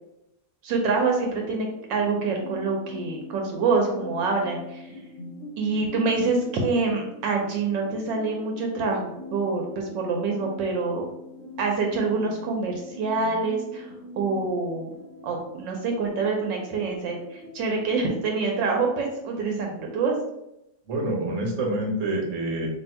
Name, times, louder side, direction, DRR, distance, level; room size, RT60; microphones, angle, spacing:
voice 1, 0.6-4.9 5.6-11.1 11.6-14.9 15.2-20.1, right 4 dB, 75° right, 1 dB, 1.3 m, -26 dB
sound 1, 1.3-18.2, left 1 dB, 55° left, 0.9 m, -42 dB
voice 2, 20.9-22.7, right 1 dB, 50° right, -1 dB, 1.1 m, -27 dB
2.9 x 2.7 x 4.2 m, 0.85 s
omnidirectional pair, 2.1 m